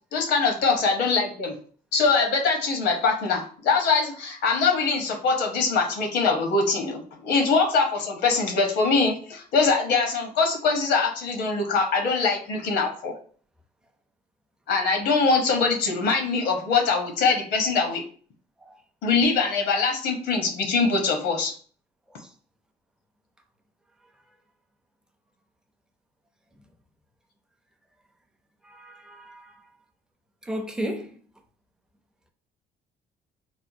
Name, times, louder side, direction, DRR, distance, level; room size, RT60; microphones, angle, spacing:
voice 1, 0.1-1.5 1.9-13.1 14.7-18.0 19.0-21.5, left 4 dB, 80° left, 0.9 m, -23 dB
voice 2, 28.6-29.6 30.4-31.2, equal, 5° right, 0.5 m, -35 dB
3.5 x 2.1 x 2.6 m
cardioid pair, 110°, 17 cm